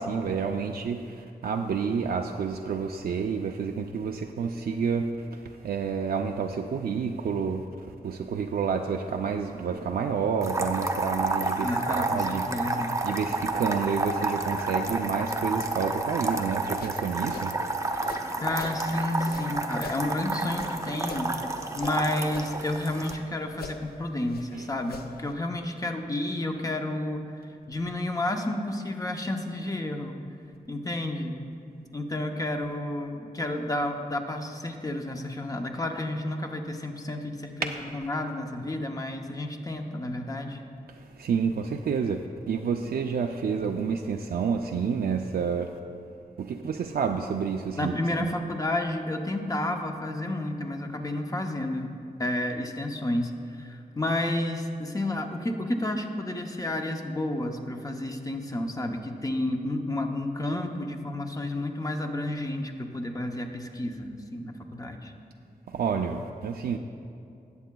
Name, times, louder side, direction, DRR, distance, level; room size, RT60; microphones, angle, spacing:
voice 1, 0.0-12.5 13.0-17.6 24.5-24.7 37.6-37.9 40.9-45.7 46.4-48.3 65.7-66.8, right 6 dB, 75° right, 3 dB, 0.4 m, -29 dB
sound 1, 10.4-23.1, right 2 dB, 20° right, 0.5 m, -30 dB
voice 2, 11.6-13.0 18.4-21.3 21.8-27.2 27.7-30.1 30.7-31.3 31.9-40.6 42.8-42.9 47.8-53.3 53.6-65.1, left 1 dB, 20° left, 3 dB, 0.7 m, -31 dB
sound 2, 16.5-18.8 19.2-22.0 22.2-23.2 23.5-25.3, left 4 dB, 80° left, 0.7 m, -44 dB
18.0 x 8.2 x 2.3 m, 2.6 s
wide cardioid pair, 160°, 16 cm